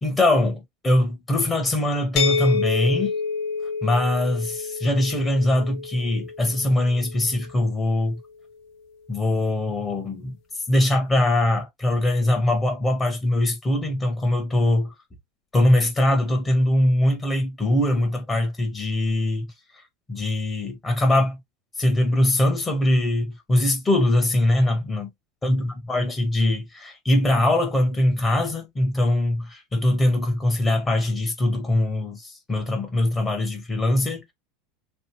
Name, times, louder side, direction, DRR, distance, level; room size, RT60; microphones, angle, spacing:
voice 1, 0.0-3.1 3.8-8.2 9.1-10.4 10.7-14.9 15.5-19.5 20.1-21.4 21.8-25.1 25.4-34.3, left 1 dB, 20° left, 1.4 m, -22 dB
sound 1, 2.2-7.9, left 5 dB, 65° left, 0.7 m, -28 dB
3.3 x 2.5 x 3.1 m
supercardioid pair, 105°, 0 cm